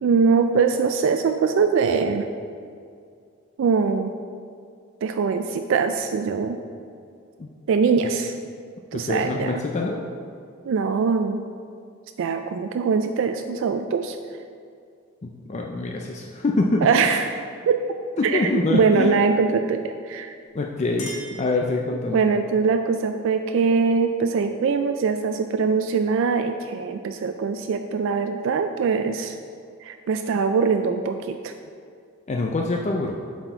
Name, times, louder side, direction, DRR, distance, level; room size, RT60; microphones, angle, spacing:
voice 1, 0.0-2.3 3.6-4.2 5.0-6.6 7.7-8.4 8.9-9.6 10.7-11.4 12.2-14.2 16.8-17.4 17.7-17.8 18.2-20.4 22.1-29.4 29.8-31.5, right 5 dB, 60° right, 7 dB, 0.3 m, -22 dB
voice 2, 8.9-10.0 15.2-17.2 18.2-19.1 20.5-22.2 32.3-33.1, left 2 dB, 30° left, 1 dB, 0.4 m, -25 dB
Chink clink, 20.4-22.3, equal, 75° left, 1.8 m, -41 dB
7.9 x 4.2 x 4.4 m, 2.3 s
head